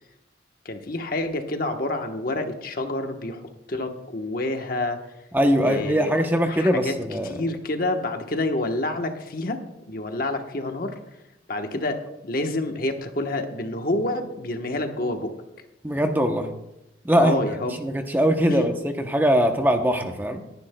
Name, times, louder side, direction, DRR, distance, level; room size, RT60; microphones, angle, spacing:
voice 1, 0.6-5.0 5.6-9.6 9.9-11.2 11.5-15.3 17.2-17.8 18.4-18.7 20.0-20.1, left 2 dB, 50° left, 5 dB, 1.1 m, -28 dB
voice 2, 5.3-7.3 15.8-16.5 17.0-17.4 17.8-20.4, equal, 10° right, 5 dB, 0.7 m, -21 dB
21.0 x 10.0 x 2.2 m, 0.90 s
head